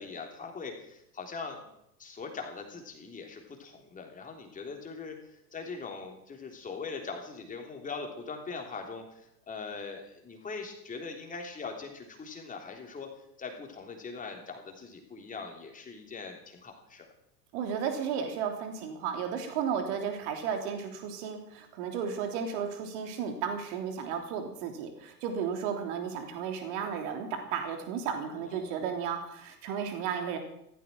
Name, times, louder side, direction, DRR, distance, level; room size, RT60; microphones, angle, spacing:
voice 1, 0.0-1.7 2.0-13.1 13.4-17.1 28.3-28.7, left 4 dB, 15° left, 3 dB, 3.5 m, -41 dB
voice 2, 17.5-30.4, right 7 dB, 45° right, 5 dB, 3.3 m, -34 dB
16.0 x 14.5 x 6.1 m, 0.77 s
figure-of-eight pair, 90°, 49 cm